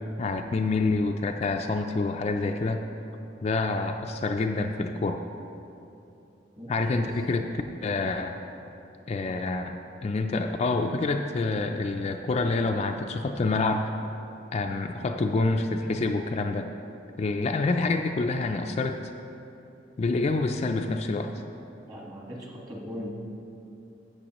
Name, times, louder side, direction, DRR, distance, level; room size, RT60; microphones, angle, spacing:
voice 1, 0.2-2.9 3.4-5.2 6.7-7.5 7.8-8.3 9.1-9.8 10.0-13.9 14.5-16.7 17.2-19.0 20.0-21.4, left 3 dB, 35° left, 4 dB, 0.3 m, -27 dB
voice 2, 6.6-7.1 21.9-23.1, equal, 20° right, -2 dB, 1.4 m, -39 dB
13.0 x 8.0 x 3.0 m, 2.8 s
head